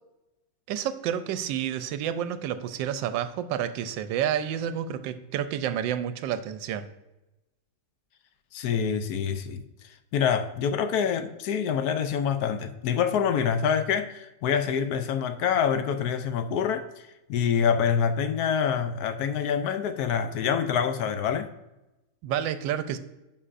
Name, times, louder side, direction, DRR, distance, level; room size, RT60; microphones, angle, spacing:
voice 1, 0.7-6.9 22.2-23.0, right 10 dB, 90° right, 11 dB, 1.3 m, -29 dB
voice 2, 8.5-21.5, left 7 dB, 70° left, 9 dB, 1.0 m, -26 dB
9.7 x 5.5 x 2.5 m, 0.99 s
omnidirectional pair, 2.0 m